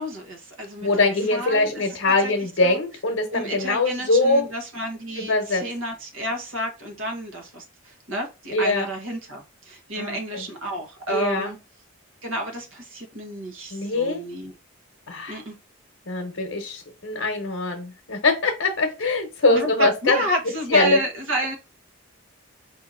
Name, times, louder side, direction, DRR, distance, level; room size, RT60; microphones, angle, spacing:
voice 1, 0.0-2.3 2.6-2.8 3.3-11.6 12.2-14.5 15.3-15.6 19.5-21.5, right 1 dB, 70° right, 3 dB, 1.4 m, -31 dB
voice 2, 0.8-4.4 5.2-5.6 8.5-8.9 10.0-10.4 11.1-11.5 13.7-14.2 15.1-15.4 16.1-20.2 20.7-21.0, left 2 dB, 65° left, 4 dB, 0.9 m, -22 dB
4.9 x 2.8 x 3.7 m, 0.27 s
head